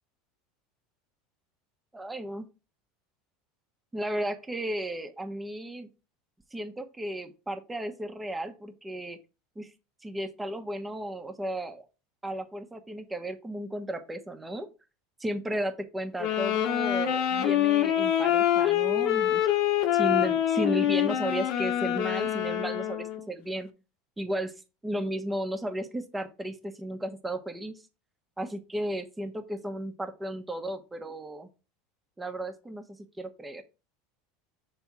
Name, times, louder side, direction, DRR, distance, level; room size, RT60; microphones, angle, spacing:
voice 1, 1.9-2.5 3.9-5.9 6.5-9.2 9.6-9.7 10.0-11.8 12.2-14.7 15.2-19.5 19.9-23.7 24.2-24.5 24.8-27.8 28.4-31.5 32.2-33.6, right 1 dB, 10° right, 7 dB, 1.1 m, -34 dB
sound 1, 16.2-23.3, left 11 dB, 60° left, 1.1 m, -25 dB
7.1 x 3.4 x 4.6 m, 0.30 s
supercardioid pair, 110°, 0 cm